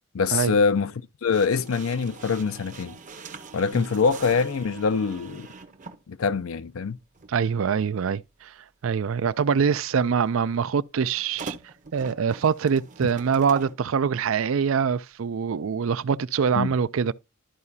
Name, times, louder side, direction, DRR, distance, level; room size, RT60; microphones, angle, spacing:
voice 1, 0.1-3.0 3.5-5.5 6.1-7.0 16.5-16.7, left 5 dB, 80° left, 0.5 m, -24 dB
sound 1, 1.3-6.0 7.1-7.3 11.2-13.8, right 4 dB, 35° right, 0.8 m, -42 dB
voice 2, 7.3-8.5 8.8-11.6 11.9-17.1, right 6 dB, 70° right, 0.4 m, -24 dB
12.5 x 4.8 x 2.7 m
head